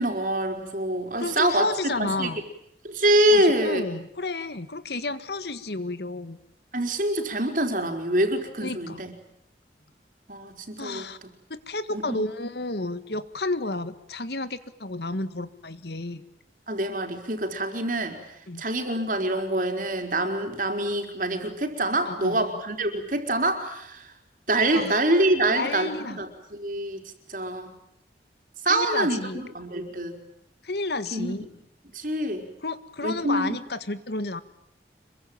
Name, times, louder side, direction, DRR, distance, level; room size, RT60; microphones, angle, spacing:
voice 1, 0.0-1.7 2.0-2.3 2.8-3.9 6.7-9.1 10.3-11.0 11.9-12.2 16.7-18.2 18.6-24.1 24.5-27.0 27.3-27.7 28.6-30.2 31.1-31.4 31.9-32.4 33.0-33.6, right 1 dB, 50° right, 5 dB, 4.6 m, -25 dB
voice 2, 1.2-2.4 3.3-6.4 8.6-9.0 10.8-11.2 11.5-16.2 18.5-18.6 22.1-22.5 24.7-24.9 25.5-26.2 28.7-29.4 30.6-31.5 32.6-34.4, left 2 dB, 70° left, 12 dB, 1.8 m, -31 dB
26.5 x 23.5 x 9.1 m, 0.75 s
head